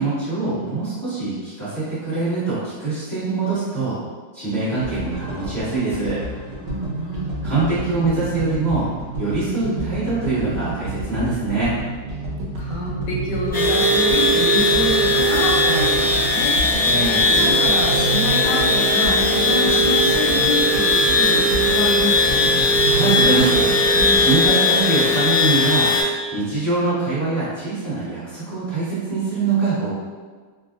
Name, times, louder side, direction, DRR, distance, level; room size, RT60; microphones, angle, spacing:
voice 1, 0.0-4.0 4.3-6.2 7.4-8.9 9.2-11.7 16.8-17.3 22.9-23.7 24.1-25.9 26.3-30.0, right 3 dB, 35° right, -13 dB, 1.3 m, -23 dB
sound 1, 4.7-24.5, right 2 dB, 70° right, 1.1 m, -29 dB
voice 2, 6.6-7.4 12.6-16.9 17.3-22.5, left 2 dB, 70° left, -2 dB, 1.0 m, -27 dB
sound 2, 13.5-26.0, left 1 dB, 20° left, 0.5 m, -18 dB
3.4 x 2.3 x 2.5 m, 1.4 s
omnidirectional pair, 2.3 m